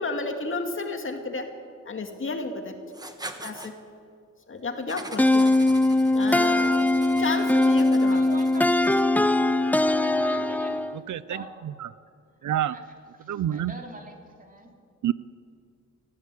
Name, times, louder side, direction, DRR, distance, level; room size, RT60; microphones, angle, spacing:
voice 1, 0.0-1.5 1.9-2.7 3.4-3.7 4.5-5.5 6.1-6.9 7.2-8.2, left 3 dB, 45° left, 5 dB, 2.2 m, -32 dB
Writing, 2.9-3.7 4.9-9.2, right 2 dB, 15° right, 1.3 m, -42 dB
sound 1, 5.2-11.0, left 2 dB, 5° left, 0.5 m, -21 dB
voice 2, 7.3-8.8 9.9-11.5 12.7-12.8 13.2-14.7, right 2 dB, 30° right, 2 dB, 2.9 m, -43 dB
voice 3, 11.1-11.4 11.8-11.9 12.4-12.8 13.3-13.7 15.0-15.1, right 11 dB, 80° right, 17 dB, 0.6 m, -26 dB
19.5 x 16.0 x 8.4 m, 2.3 s
wide cardioid pair, 135°, 30 cm